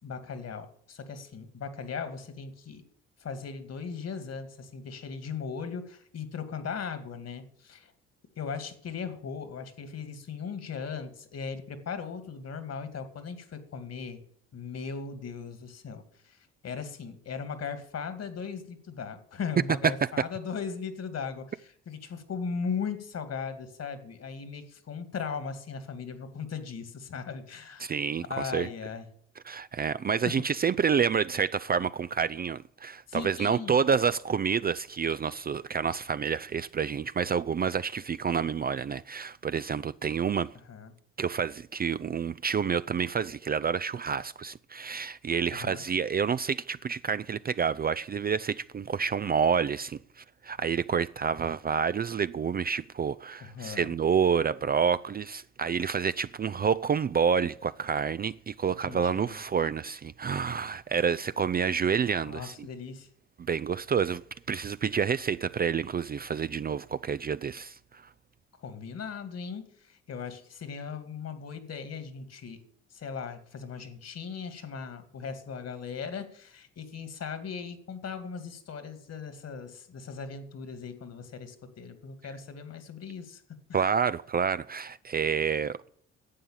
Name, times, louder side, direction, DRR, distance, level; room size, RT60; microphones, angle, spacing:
voice 1, 0.0-2.8 3.2-7.9 8.4-14.2 14.5-16.4 16.6-28.0 28.3-29.1 30.2-30.3 33.1-33.8 40.7-40.9 45.5-45.8 53.4-53.9 58.8-59.4 62.3-63.1 68.6-72.6 72.9-83.4 83.7-83.9, left 6 dB, 50° left, 2.3 m, -38 dB
voice 2, 27.8-28.7 29.5-40.5 41.2-62.7 63.5-64.2 64.5-68.0 83.7-85.9, right 6 dB, 30° right, 0.4 m, -28 dB
11.5 x 8.0 x 8.8 m
hypercardioid pair, 60°, 32 cm